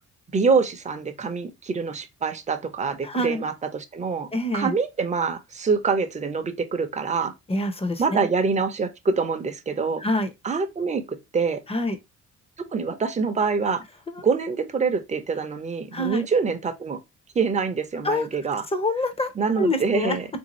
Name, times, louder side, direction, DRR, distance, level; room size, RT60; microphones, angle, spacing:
voice 1, 0.3-4.3 4.5-7.3 8.0-10.0 10.4-11.6 12.7-13.8 14.2-17.0 17.3-18.6 19.4-20.3, right 5 dB, 25° right, 0.6 m, -25 dB
voice 2, 3.0-3.4 4.3-4.8 7.5-8.2 10.0-10.3 11.7-12.0 14.1-14.2 15.9-16.3 18.0-18.3 18.7-20.2, left 1 dB, 20° left, 0.7 m, -26 dB
3.5 x 2.7 x 2.9 m
cardioid pair, 90°, 30 cm